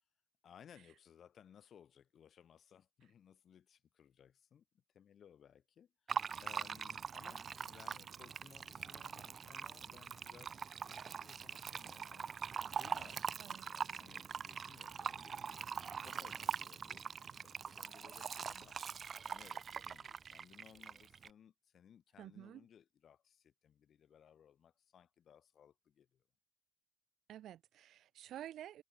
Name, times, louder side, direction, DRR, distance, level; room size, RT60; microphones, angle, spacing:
voice 1, 0.4-12.3 12.7-18.8 19.2-26.2, left 8 dB, 60° left, 3.7 m, -62 dB
Fill (with liquid), 6.1-21.3, right 6 dB, 50° right, 1.0 m, -43 dB
voice 2, 22.2-22.6 27.3-28.8, right 12 dB, 75° right, 2.4 m, -50 dB
cardioid pair, 90°, 0 cm